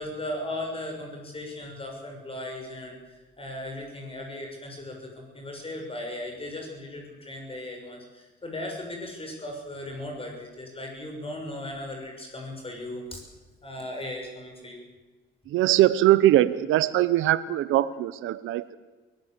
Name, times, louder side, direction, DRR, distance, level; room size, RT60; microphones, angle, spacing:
voice 1, 0.0-13.2 13.6-14.8, left 1 dB, 30° left, 1 dB, 6.7 m, -37 dB
voice 2, 15.5-18.8, right 14 dB, 90° right, 16 dB, 0.9 m, -21 dB
23.0 x 17.0 x 8.1 m, 1.3 s
cardioid pair, 90°, 20 cm